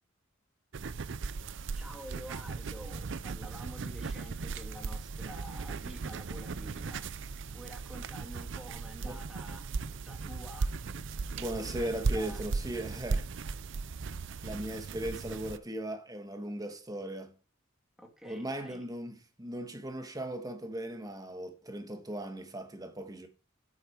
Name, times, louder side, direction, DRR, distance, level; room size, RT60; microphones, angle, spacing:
sound 1, 0.7-15.6, right 4 dB, 65° right, 0.5 m, -37 dB
voice 1, 1.7-7.1 7.5-9.8 10.1-10.7 11.4-12.4 18.0-18.8, equal, ahead, 2.0 m, -49 dB
voice 2, 11.3-13.3 14.4-17.3 18.2-23.3, right 1 dB, 20° right, 1.4 m, -38 dB
8.4 x 8.4 x 4.5 m
head